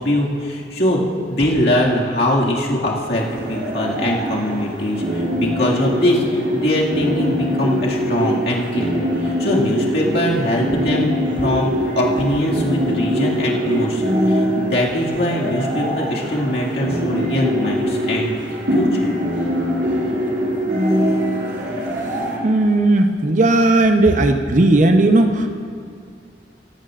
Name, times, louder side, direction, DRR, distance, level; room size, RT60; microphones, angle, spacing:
voice 1, 0.0-18.3 18.7-19.1, left 1 dB, 65° left, -4 dB, 2.2 m, -22 dB
sound 1, 3.1-22.4, equal, 80° right, 3.0 m, -22 dB
voice 2, 22.4-25.5, right 2 dB, 45° right, 6 dB, 0.8 m, -15 dB
17.5 x 15.5 x 2.5 m, 2.4 s
head